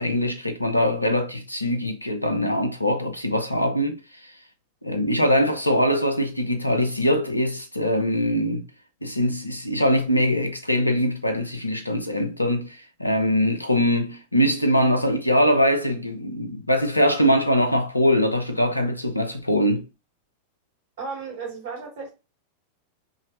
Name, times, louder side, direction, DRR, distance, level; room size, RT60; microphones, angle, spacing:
voice 1, 0.0-4.3 4.8-8.7 9.0-19.9, equal, 85° left, 0.7 m, -22 dB
voice 2, 21.0-22.1, right 4 dB, 55° right, 2.1 m, -34 dB
5.4 x 3.2 x 2.5 m
figure-of-eight pair, 90°, 0 cm